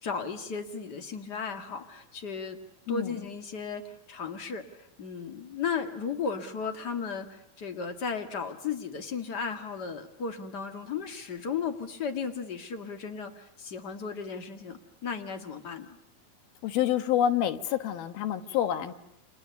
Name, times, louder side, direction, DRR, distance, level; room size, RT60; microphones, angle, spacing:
voice 1, 0.0-2.6 2.9-16.0, left 5 dB, 40° left, 6 dB, 1.7 m, -35 dB
voice 2, 2.9-3.2 16.6-18.9, left 10 dB, 80° left, 9 dB, 3.3 m, -27 dB
30.0 x 26.0 x 7.0 m, 0.81 s
omnidirectional pair, 4.2 m